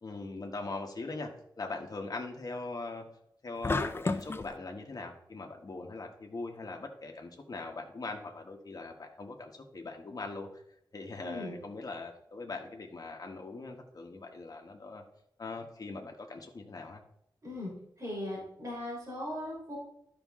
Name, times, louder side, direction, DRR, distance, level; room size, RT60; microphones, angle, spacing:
voice 1, 0.0-1.3 1.6-3.0 3.4-10.6 10.9-15.0 15.4-17.0, left 3 dB, 50° left, 2 dB, 1.2 m, -41 dB
sound 1, 3.6-4.5, left 3 dB, 30° left, 0.4 m, -31 dB
voice 2, 11.2-11.5 17.4-17.7 18.0-19.8, left 1 dB, 45° right, -5 dB, 3.8 m, -38 dB
12.5 x 5.2 x 3.6 m, 0.75 s
wide cardioid pair, 115°, 8 cm